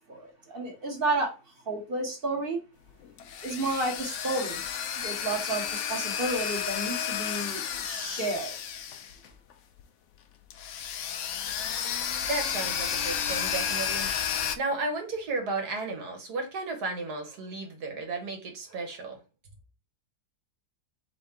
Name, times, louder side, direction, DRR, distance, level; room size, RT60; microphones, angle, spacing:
voice 1, 0.1-1.3 1.7-2.6 3.4-4.6 5.0-8.6, right 2 dB, 35° right, 1.3 m, -31 dB
sound 1, 2.9-9.5 9.8-9.9 10.5-14.6, left 8 dB, 75° left, 0.7 m, -32 dB
voice 2, 12.3-14.1 14.3-19.2, right 3 dB, 70° right, 1.6 m, -34 dB
3.5 x 3.5 x 4.3 m
omnidirectional pair, 1.8 m